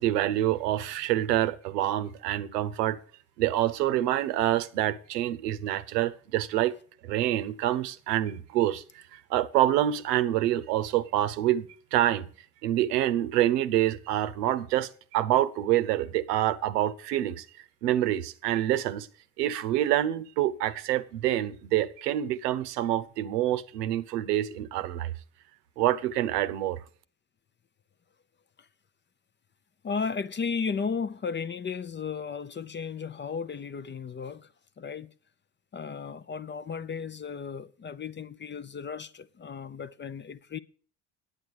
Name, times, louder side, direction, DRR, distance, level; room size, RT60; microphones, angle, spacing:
voice 1, 0.0-3.0 3.4-6.7 7.0-12.3 12.6-17.4 17.8-19.1 19.4-25.1 25.8-26.8, right 13 dB, 75° right, 0.8 m, -27 dB
voice 2, 29.8-34.5 34.8-35.1 35.7-40.6, left 5 dB, 25° left, 0.6 m, -34 dB
9.9 x 8.7 x 6.2 m
figure-of-eight pair, 50°, 48 cm